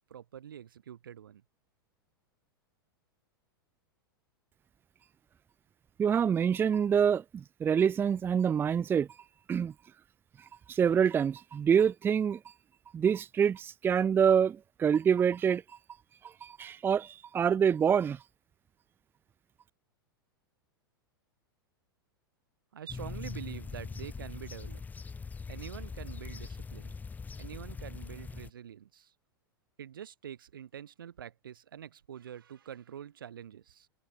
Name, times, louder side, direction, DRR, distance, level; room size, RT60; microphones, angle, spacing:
voice 1, 0.1-1.4 22.7-24.8 25.5-26.9 27.4-29.1 29.8-33.9, right 9 dB, 65° right, 3.7 m, -46 dB
voice 2, 6.0-9.1 9.5-9.7 10.4-12.5 12.9-15.8 16.2-18.2, right 7 dB, 20° right, 0.6 m, -26 dB
sound 1, 22.9-28.5, left 5 dB, 15° left, 2.0 m, -42 dB
figure-of-eight pair, 95°, 12 cm